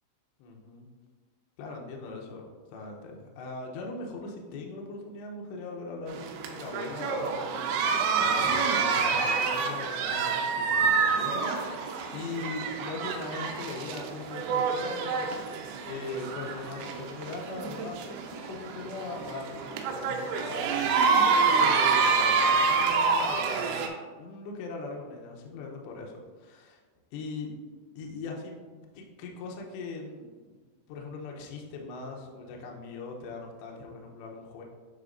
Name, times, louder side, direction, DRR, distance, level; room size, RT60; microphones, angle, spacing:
voice 1, 0.4-0.9 1.6-23.9 24.2-26.1 26.4-26.8 27.1-27.5 28.0-30.6 30.9-34.6, left 3 dB, 80° left, 0 dB, 2.7 m, -40 dB
sound 1, 6.1-23.9, right 5 dB, 85° right, 3.3 m, -27 dB
9.6 x 5.0 x 2.6 m, 1.4 s
omnidirectional pair, 5.8 m